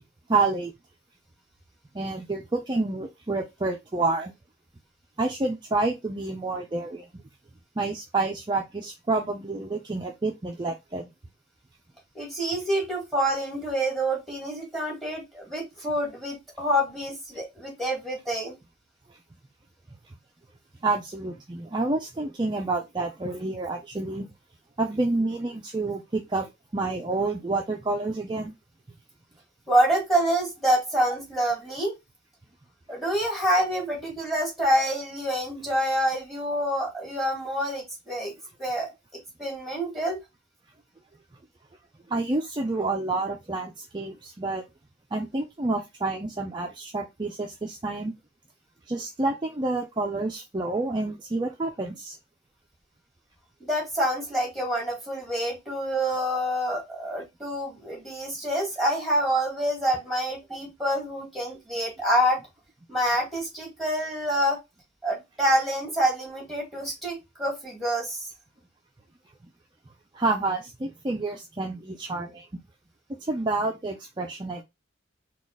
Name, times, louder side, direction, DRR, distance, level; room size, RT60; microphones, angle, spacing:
voice 1, 0.3-0.7 1.9-4.3 5.2-7.1 7.8-11.0 20.8-24.3 24.8-28.5 42.1-44.6 45.1-48.1 48.9-52.2 70.1-72.5 73.2-74.6, right 3 dB, 25° right, 0.5 m, -28 dB
voice 2, 12.1-18.5 29.7-32.0 32.9-38.3 38.6-38.9 39.4-40.2 53.6-62.4 62.9-64.6 65.0-68.3, equal, ahead, 1.9 m, -27 dB
4.1 x 2.4 x 3.5 m
head